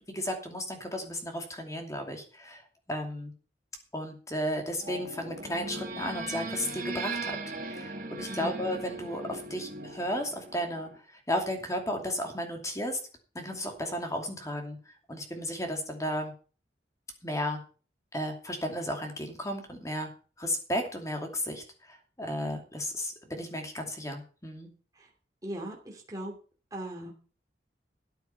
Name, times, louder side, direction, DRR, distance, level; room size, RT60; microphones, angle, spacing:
voice 1, 0.1-2.6 2.9-3.3 3.9-7.3 7.6-10.9 11.3-13.0 13.3-16.3 17.2-17.6 18.1-20.1 20.4-24.7, equal, 20° left, 3 dB, 2.6 m, -34 dB
sound 1, 4.8-11.0, right 2 dB, 45° right, 2.4 m, -39 dB
voice 2, 25.4-26.3 26.7-27.1, right 1 dB, 20° right, -1 dB, 2.8 m, -38 dB
13.5 x 9.3 x 5.7 m, 0.38 s
head